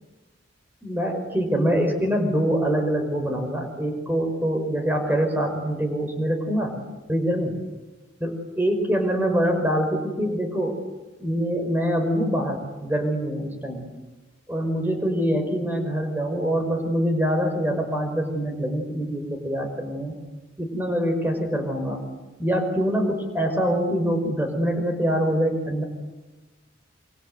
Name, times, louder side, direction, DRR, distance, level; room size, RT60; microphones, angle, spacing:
voice 1, 0.8-6.8 7.1-7.6 8.2-10.8 11.2-13.9 14.5-20.1 20.6-22.0 22.4-25.8, equal, 10° right, 4 dB, 5.3 m, -24 dB
27.0 x 26.0 x 8.0 m, 1.1 s
head